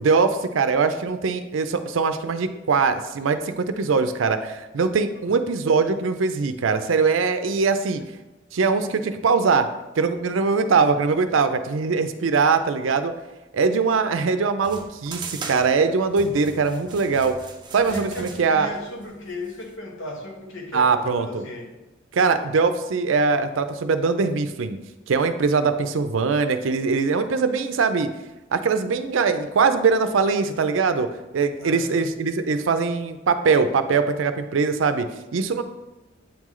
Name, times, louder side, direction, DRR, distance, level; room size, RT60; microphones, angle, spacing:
voice 1, 0.0-8.0 8.5-9.7 10.0-13.1 13.5-17.4 17.7-18.7 20.7-21.4 22.1-24.8 25.1-28.1 28.5-31.1 31.3-35.6, right 4 dB, 90° right, 10 dB, 0.5 m, -22 dB
Perkins Brailler Noises, 14.6-19.7, right 4 dB, 25° right, 0.6 m, -39 dB
voice 2, 17.8-21.7 31.6-32.1, left 1 dB, 85° left, 1 dB, 1.1 m, -36 dB
8.7 x 3.1 x 3.7 m, 1.1 s
head